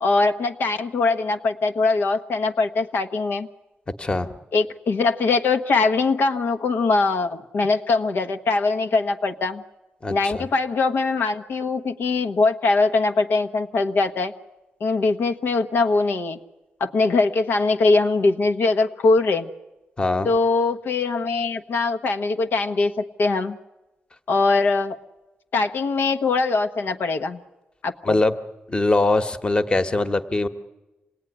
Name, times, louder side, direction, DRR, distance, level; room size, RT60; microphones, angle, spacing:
voice 1, 0.0-3.5 4.5-9.6 10.1-14.3 14.8-16.4 16.8-19.5 20.2-23.6 24.3-25.0 25.5-27.4 27.8-28.2, left 3 dB, 70° left, 6 dB, 1.1 m, -22 dB
voice 2, 10.0-10.5 20.0-20.3 28.0-28.3 28.7-30.5, left 2 dB, 25° left, 10 dB, 1.4 m, -22 dB
26.5 x 18.5 x 10.0 m, 1.1 s
cardioid pair, 105°, 4 cm